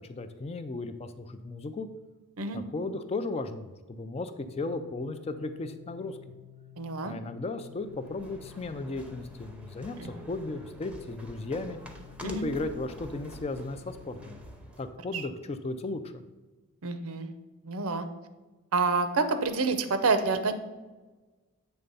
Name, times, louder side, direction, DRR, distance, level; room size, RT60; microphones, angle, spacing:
voice 1, 0.1-1.9 2.5-6.2 7.1-11.8 12.2-14.4 14.8-16.2, left 2 dB, 25° left, 9 dB, 0.4 m, -35 dB
Organ, 4.1-15.0, left 10 dB, 50° left, 1.0 m, -52 dB
voice 2, 6.8-7.2 10.0-10.1 12.2-12.5 15.1-15.2 16.8-17.3 17.6-18.1 18.7-20.5, right 4 dB, 70° right, 9 dB, 0.6 m, -28 dB
sound 1, 7.7-14.9, equal, 5° right, 0.7 m, -48 dB
8.0 x 3.3 x 5.3 m, 1.2 s
head